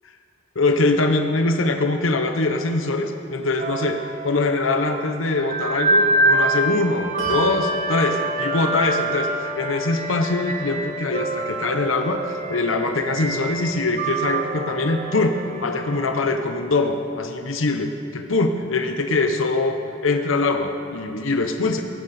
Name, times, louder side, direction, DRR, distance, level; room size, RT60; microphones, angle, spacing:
voice 1, 0.6-21.8, left 3 dB, 75° left, 6 dB, 0.9 m, -23 dB
sound 1, 3.6-16.3, right 2 dB, 35° right, 0.8 m, -26 dB
Bell, 7.2-17.2, left 4 dB, 80° right, 4.1 m, -35 dB
17.5 x 15.0 x 4.3 m, 2.7 s
head